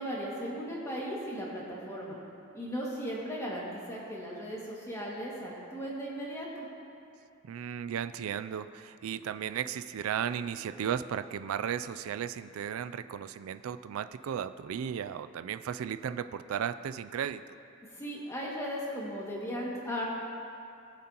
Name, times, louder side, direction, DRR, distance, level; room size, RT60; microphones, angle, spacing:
voice 1, 0.0-2.2 2.5-6.7 18.0-20.0, equal, 15° left, -5 dB, 2.0 m, -37 dB
voice 2, 7.4-17.4, right 8 dB, 85° right, 12 dB, 0.3 m, -35 dB
19.5 x 7.7 x 2.9 m, 2.6 s
head